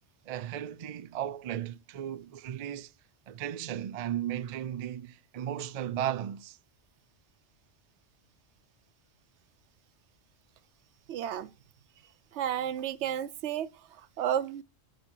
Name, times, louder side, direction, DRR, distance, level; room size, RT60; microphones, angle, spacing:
voice 1, 0.3-2.9 3.3-6.6, right 10 dB, 50° right, 0.4 m, -35 dB
voice 2, 11.1-11.5 12.3-13.7 14.2-14.6, right 10 dB, 85° right, 0.9 m, -31 dB
9.3 x 5.0 x 4.5 m
omnidirectional pair, 1.1 m